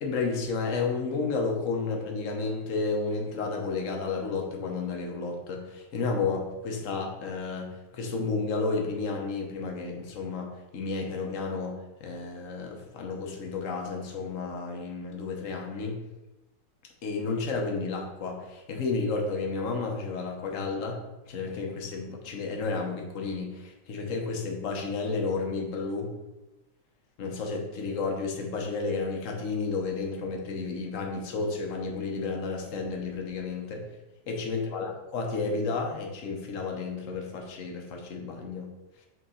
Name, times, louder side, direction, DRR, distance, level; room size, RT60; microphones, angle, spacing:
voice 1, 0.0-16.0 17.0-26.1 27.2-33.8 34.3-38.7, left 4 dB, 50° left, 2 dB, 1.0 m, -32 dB
6.5 x 3.8 x 4.0 m, 1.0 s
omnidirectional pair, 2.3 m